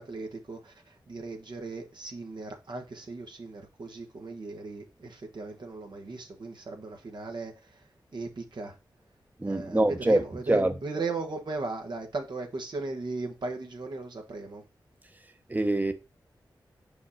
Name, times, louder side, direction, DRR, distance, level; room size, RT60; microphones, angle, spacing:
voice 1, 0.0-7.5 8.1-8.7 9.5-14.6, right 3 dB, 65° right, 1.5 m, -37 dB
voice 2, 9.4-10.2 10.5-10.7 15.5-15.9, right 1 dB, 20° right, 1.0 m, -24 dB
5.4 x 5.1 x 4.2 m
cardioid pair, 50°, 8 cm